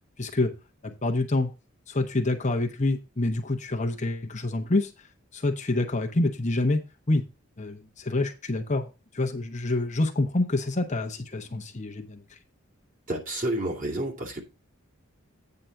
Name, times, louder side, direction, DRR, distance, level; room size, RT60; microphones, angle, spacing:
voice 1, 0.2-0.5 0.8-1.5 1.9-4.9 5.3-6.8 7.1-7.2 7.6-8.9 9.1-12.2, left 2 dB, 30° left, 3 dB, 0.9 m, -27 dB
voice 2, 13.1-14.4, right 1 dB, 35° right, -1 dB, 2.5 m, -30 dB
9.0 x 3.8 x 6.9 m, 0.28 s
head